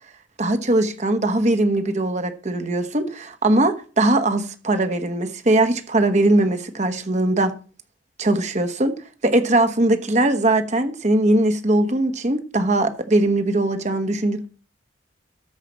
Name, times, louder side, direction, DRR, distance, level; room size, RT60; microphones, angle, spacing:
voice 1, 0.4-7.6 8.2-8.9 9.2-14.5, right 2 dB, 40° right, 1.2 m, -20 dB
13.0 x 5.0 x 7.3 m
head